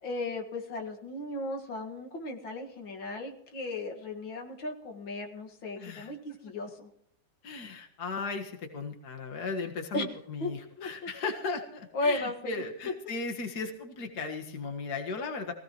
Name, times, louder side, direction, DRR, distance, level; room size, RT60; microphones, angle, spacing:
voice 1, 0.0-6.2 6.4-6.9 9.9-10.1 10.4-10.5 10.8-10.9 11.9-12.6, left 2 dB, 90° left, 2 dB, 2.6 m, -35 dB
voice 2, 5.8-6.1 7.4-15.5, left 4 dB, 55° left, 3 dB, 2.1 m, -36 dB
23.0 x 16.5 x 3.1 m, 0.70 s
omnidirectional pair, 2.0 m